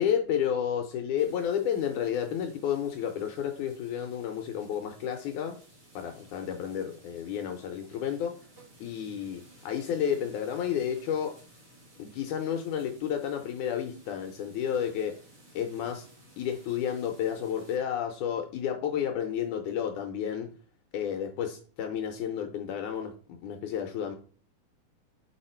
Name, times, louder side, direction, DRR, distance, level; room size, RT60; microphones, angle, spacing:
voice 1, 0.0-5.6 6.0-8.3 8.8-11.3 12.0-15.1 15.5-16.1 16.4-20.5 20.9-24.2, left 9 dB, 75° left, 2.1 m, -31 dB
sound 1, 1.2-17.8, right 1 dB, 35° right, 2.8 m, -57 dB
8.5 x 4.9 x 4.3 m
omnidirectional pair, 3.7 m